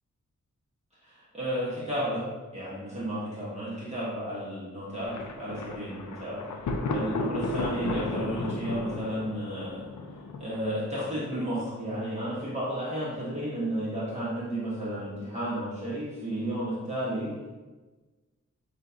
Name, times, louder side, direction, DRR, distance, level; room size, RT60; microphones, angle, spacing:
voice 1, 1.0-2.3 2.5-6.4 6.9-9.9 10.4-17.5, right 1 dB, 20° right, -9 dB, 1.1 m, -32 dB
Thunder, 5.0-10.9, left 3 dB, 70° left, 0.5 m, -34 dB
6.1 x 2.4 x 2.7 m, 1.3 s
wide cardioid pair, 60°, 30 cm